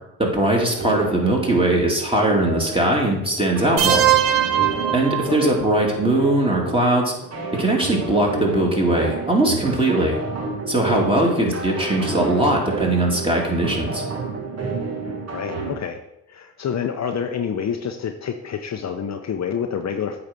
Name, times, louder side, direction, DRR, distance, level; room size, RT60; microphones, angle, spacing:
voice 1, 0.2-4.1 4.9-7.1 7.6-10.2 10.7-14.0, right 1 dB, 15° right, -1 dB, 2.8 m, -20 dB
sound 1, 0.7-15.7, right 4 dB, 40° right, 1.9 m, -30 dB
sound 2, 3.8-5.7, right 11 dB, 90° right, 0.8 m, -20 dB
voice 2, 15.3-16.0 16.3-20.2, left 7 dB, 45° left, 5 dB, 0.8 m, -28 dB
8.5 x 4.1 x 6.2 m, 0.83 s
hypercardioid pair, 55°, 38 cm